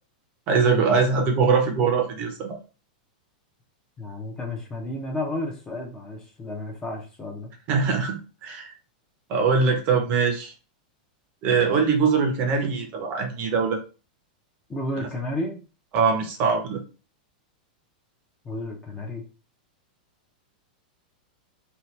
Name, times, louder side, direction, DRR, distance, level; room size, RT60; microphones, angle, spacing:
voice 1, 0.5-2.6 7.7-8.2 8.4-8.7 9.3-10.5 11.4-13.8 15.9-16.8, right 5 dB, 30° right, 3 dB, 0.6 m, -22 dB
voice 2, 4.0-7.5 14.7-15.6 18.4-19.2, left 1 dB, 15° left, 1 dB, 0.5 m, -32 dB
2.8 x 2.2 x 3.1 m, 0.34 s
supercardioid pair, 160°, 5 cm